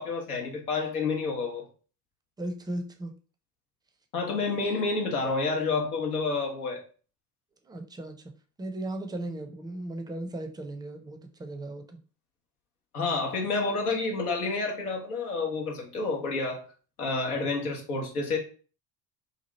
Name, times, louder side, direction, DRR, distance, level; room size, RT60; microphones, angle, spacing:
voice 1, 0.0-1.6 4.1-6.8 12.9-16.6 17.0-18.4, left 3 dB, 85° left, 0 dB, 0.8 m, -29 dB
voice 2, 2.4-3.1 7.6-8.2 8.6-12.0, right 1 dB, 10° right, 5 dB, 0.5 m, -36 dB
2.8 x 2.5 x 2.9 m, 0.39 s
hypercardioid pair, 60°, 44 cm